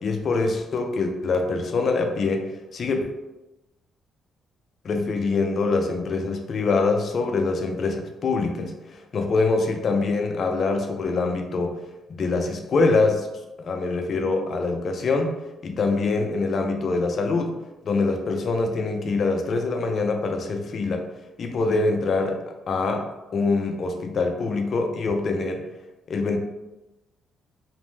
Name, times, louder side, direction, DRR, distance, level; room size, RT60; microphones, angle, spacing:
voice 1, 0.0-3.0 4.8-11.8 12.1-13.3 13.6-15.3 15.6-17.5 17.8-21.1 21.4-25.6 26.1-26.4, left 3 dB, 50° left, 4 dB, 0.4 m, -24 dB
2.5 x 2.0 x 3.1 m, 1.0 s
cardioid pair, 90°, 0 cm